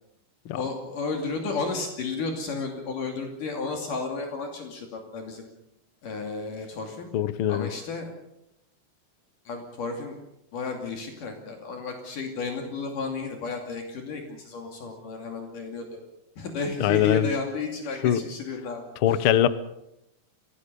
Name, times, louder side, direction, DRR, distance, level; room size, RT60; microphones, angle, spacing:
voice 1, 0.5-5.5 6.0-7.1 7.5-8.1 9.5-10.2 10.5-15.9 16.4-19.3, left 4 dB, 65° left, 3 dB, 4.2 m, -33 dB
voice 2, 7.1-7.7 16.8-17.3 18.0-18.2 19.0-19.5, left 11 dB, 85° left, 14 dB, 1.1 m, -22 dB
27.0 x 18.0 x 6.9 m, 0.83 s
omnidirectional pair, 4.0 m